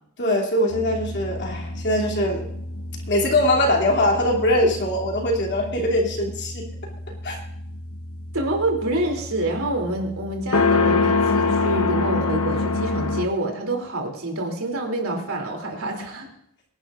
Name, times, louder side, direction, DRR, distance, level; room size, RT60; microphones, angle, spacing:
voice 1, 0.2-2.5 3.1-6.7 7.2-7.4, left 1 dB, 55° left, -1 dB, 2.9 m, -22 dB
sound 1, 0.7-13.3, left 3 dB, 80° left, 1.1 m, -27 dB
voice 2, 8.3-16.3, right 1 dB, 80° right, 1 dB, 3.1 m, -27 dB
24.5 x 11.0 x 2.6 m, 0.71 s
head